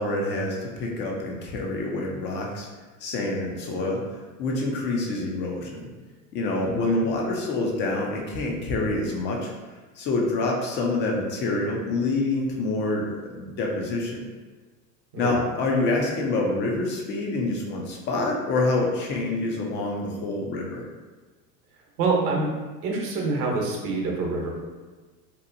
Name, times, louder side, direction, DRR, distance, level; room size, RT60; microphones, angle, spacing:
voice 1, 0.0-2.7 3.0-4.0 4.4-5.9 6.3-9.5 10.0-14.2 15.2-20.8, left 2 dB, 25° left, -1 dB, 0.3 m, -26 dB
voice 2, 6.6-7.0 15.1-15.4 22.0-22.5 22.8-24.5, right 3 dB, 65° right, -1 dB, 0.9 m, -26 dB
2.8 x 2.1 x 2.5 m, 1.3 s
hypercardioid pair, 95°, 47 cm